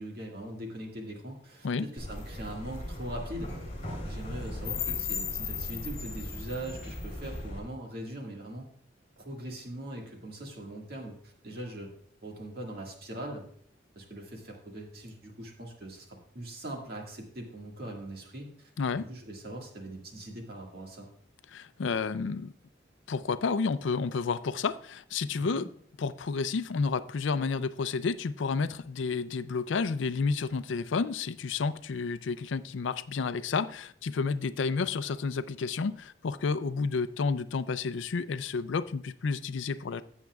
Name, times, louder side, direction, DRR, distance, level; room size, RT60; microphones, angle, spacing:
voice 1, 0.0-3.5 4.0-8.7 9.2-11.9 12.2-13.5 14.0-21.1 25.5-25.6, right 1 dB, 50° right, 0 dB, 1.9 m, -41 dB
sound 1, 2.0-7.6, left 3 dB, 35° left, 3.2 m, -36 dB
voice 2, 21.5-22.5 23.1-25.7 26.0-40.0, left 4 dB, 80° left, 14 dB, 0.4 m, -30 dB
15.5 x 7.1 x 2.3 m, 0.63 s
head